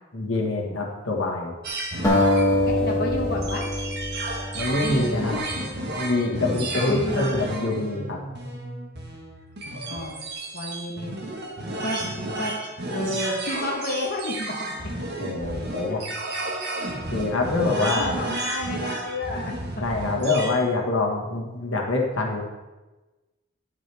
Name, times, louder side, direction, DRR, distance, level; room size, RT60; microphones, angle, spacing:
voice 1, 0.1-1.5 4.5-5.3 6.0-8.2 15.2-16.0 17.1-18.1 19.8-22.4, left 2 dB, 75° left, 0 dB, 1.6 m, -25 dB
sound 1, 1.6-20.6, right 2 dB, 55° right, 1.4 m, -32 dB
sound 2, 2.0-5.3, left 1 dB, 15° left, 1.6 m, -24 dB
voice 2, 2.7-3.7 4.7-5.4 6.7-7.4 9.9-10.2 10.5-11.2 11.8-12.0 12.4-12.5 12.9-14.7 15.9-16.0 17.8-19.5, left 1 dB, 50° left, -2 dB, 1.2 m, -30 dB
11.0 x 7.5 x 3.4 m, 1.2 s
head